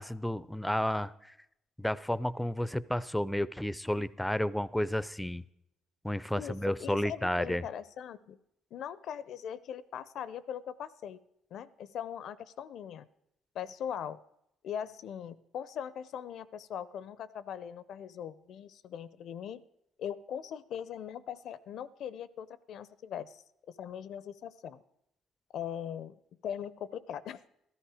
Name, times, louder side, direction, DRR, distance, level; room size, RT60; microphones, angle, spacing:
voice 1, 0.0-1.3 1.8-5.4 6.0-7.6, left 1 dB, 5° left, 18 dB, 0.5 m, -32 dB
voice 2, 6.4-8.4 8.7-11.2 11.5-13.1 13.5-14.2 14.6-19.6 20.0-23.4 23.8-24.8 25.5-27.4, left 9 dB, 65° left, 17 dB, 0.6 m, -40 dB
14.0 x 13.0 x 4.9 m, 0.81 s
cardioid pair, 85°, 0 cm